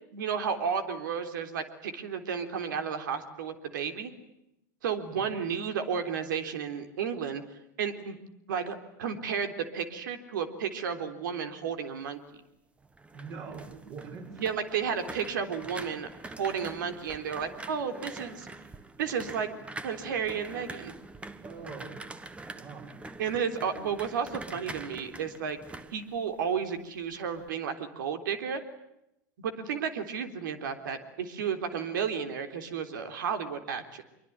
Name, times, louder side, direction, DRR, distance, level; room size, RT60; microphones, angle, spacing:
voice 1, 0.1-4.1 4.8-7.4 7.8-8.2 8.5-12.2 14.4-16.1 16.4-18.5 19.0-19.5 19.8-20.9 23.2-25.6 25.9-28.6 29.4-34.0, right 7 dB, 80° right, 8 dB, 3.6 m, -32 dB
sound 1, 12.8-26.8 27.1-27.5, right 3 dB, 10° right, 1.3 m, -45 dB
voice 2, 13.1-14.4 21.4-23.0, right 5 dB, 40° right, 3 dB, 6.3 m, -44 dB
25.0 x 23.5 x 9.4 m, 0.85 s
supercardioid pair, 125°, 10 cm